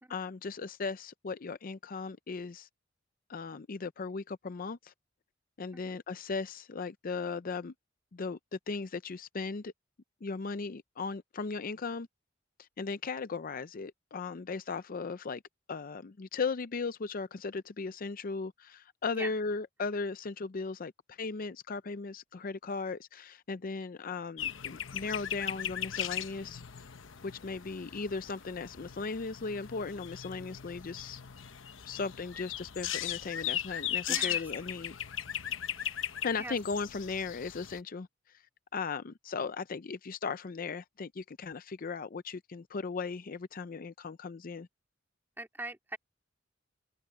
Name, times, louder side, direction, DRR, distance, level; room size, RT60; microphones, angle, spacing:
voice 1, 0.1-2.7 3.3-4.9 5.6-7.7 8.1-9.7 10.2-12.1 12.6-15.4 15.7-26.6 27.2-31.2 31.8-35.2 36.2-38.1 38.7-44.7, left 4 dB, 50° left, 0.5 m, -37 dB
sound 1, 24.4-37.8, left 10 dB, 85° left, 1.0 m, -38 dB
voice 2, 34.1-34.5 35.8-36.0 36.4-36.6 45.4-46.0, right 2 dB, 10° right, 2.3 m, -41 dB
head